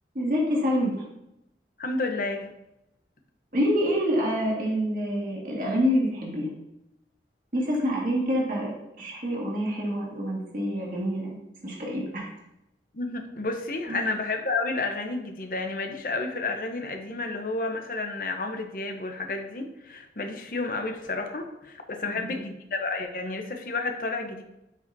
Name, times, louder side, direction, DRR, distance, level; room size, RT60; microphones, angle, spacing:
voice 1, 0.1-0.9 3.5-6.5 7.5-11.4 11.6-12.3 13.9-14.0 22.2-22.4, equal, 50° right, -4 dB, 1.9 m, -27 dB
voice 2, 1.8-2.5 12.9-24.4, left 3 dB, 50° left, 4 dB, 0.8 m, -31 dB
9.8 x 5.1 x 2.7 m, 0.87 s
head